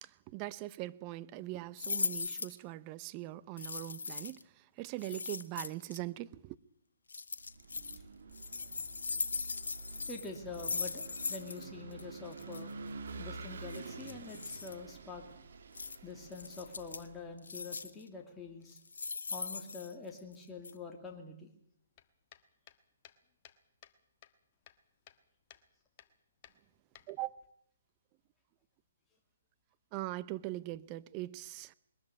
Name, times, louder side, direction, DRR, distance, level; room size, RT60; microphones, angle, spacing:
voice 1, 0.0-4.4 4.8-6.6 27.1-27.4 29.9-31.7, right 17 dB, 30° right, 0.8 m, -41 dB
sound 1, 1.8-2.6 3.6-4.4 5.0-6.0 7.1-8.0 8.3-11.7 11.9-12.0 12.3-12.6 13.7-14.7 15.7-16.0 16.3-17.1 17.4-18.0 18.7-20.3 20.6-20.7, left 4 dB, 85° left, 1.2 m, -39 dB
Vehicle / Engine, 7.4-17.2, right 4 dB, 65° right, 2.8 m, -48 dB
voice 2, 10.1-12.7 13.2-15.2 16.0-18.8 19.3-21.5, left 4 dB, 10° left, 2.7 m, -46 dB
sound 2, 21.9-24.0 24.2-25.2 25.5-25.7 26.0-26.1 26.4-27.5, left 12 dB, 35° left, 1.3 m, -58 dB
21.5 x 13.5 x 9.9 m
hypercardioid pair, 140°, 0 cm